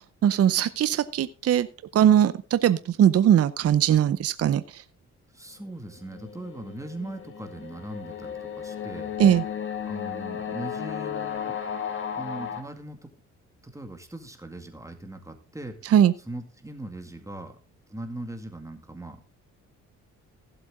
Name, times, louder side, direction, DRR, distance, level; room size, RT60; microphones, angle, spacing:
voice 1, 0.2-1.7 1.9-4.6 9.2-9.4 15.9-16.1, right 10 dB, 50° right, 14 dB, 0.7 m, -20 dB
voice 2, 5.3-9.1 9.9-11.6 12.1-13.1 13.6-17.6 17.9-19.2, right 1 dB, 10° right, 5 dB, 2.1 m, -40 dB
sound 1, 5.9-12.6, left 8 dB, 40° left, 2.1 m, -34 dB
15.5 x 7.9 x 3.7 m, 0.34 s
cardioid pair, 90°, 30 cm